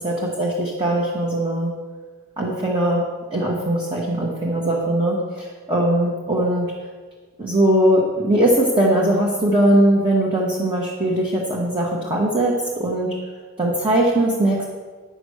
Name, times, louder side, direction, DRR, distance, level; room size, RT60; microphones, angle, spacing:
voice 1, 0.0-1.7 2.4-3.0 3.3-6.7 7.4-13.1 13.6-14.6, right 1 dB, 25° right, -4 dB, 1.4 m, -20 dB
10.5 x 6.1 x 6.4 m, 1.5 s
head